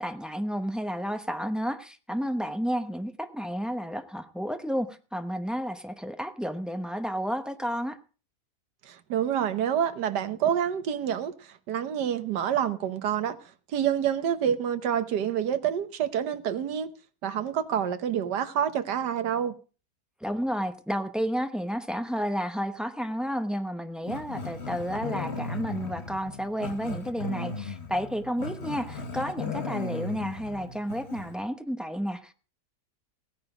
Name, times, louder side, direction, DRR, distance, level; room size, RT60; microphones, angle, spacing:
voice 1, 0.0-8.0 20.2-32.3, equal, ahead, 7 dB, 0.4 m, -31 dB
voice 2, 8.8-13.4 13.7-16.9 17.2-19.5, right 9 dB, 85° right, 11 dB, 1.6 m, -27 dB
Growling, 24.1-31.4, left 4 dB, 45° left, 1.6 m, -37 dB
16.5 x 9.5 x 5.0 m, 0.38 s
omnidirectional pair, 1.7 m